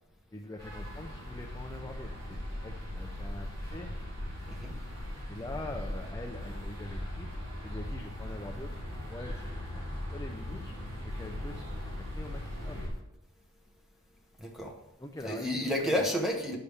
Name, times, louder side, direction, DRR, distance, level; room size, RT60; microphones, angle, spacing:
voice 1, 0.3-3.9 4.6-4.8 5.3-7.3 7.6-8.8 9.1-9.5 10.1-10.7 11.1-11.6 12.1-12.8 15.0-15.5 15.8-16.0, left 1 dB, 15° left, 2 dB, 0.5 m, -43 dB
sound 1, 0.6-12.9, left 1 dB, 80° right, 3.6 m, -39 dB
voice 2, 14.4-14.8 15.2-16.6, equal, ahead, 0 dB, 1.1 m, -31 dB
9.7 x 6.7 x 3.5 m, 0.87 s
head